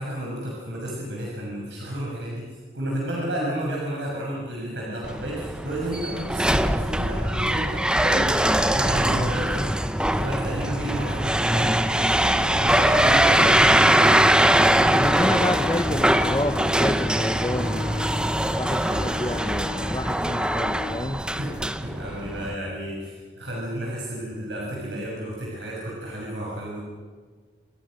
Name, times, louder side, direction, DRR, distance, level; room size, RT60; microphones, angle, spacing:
voice 1, 0.0-2.5 2.7-14.8 18.8-19.1 21.3-26.8, right 1 dB, 80° right, -4 dB, 6.5 m, -32 dB
sound 1, 5.0-22.5, right 1 dB, 5° right, 0.8 m, -22 dB
sound 2, 14.4-21.0, left 3 dB, 60° left, 6.4 m, -35 dB
voice 2, 14.9-17.9 18.5-21.2, left 1 dB, 20° left, 8 dB, 0.9 m, -29 dB
27.5 x 24.5 x 6.5 m, 1.5 s
head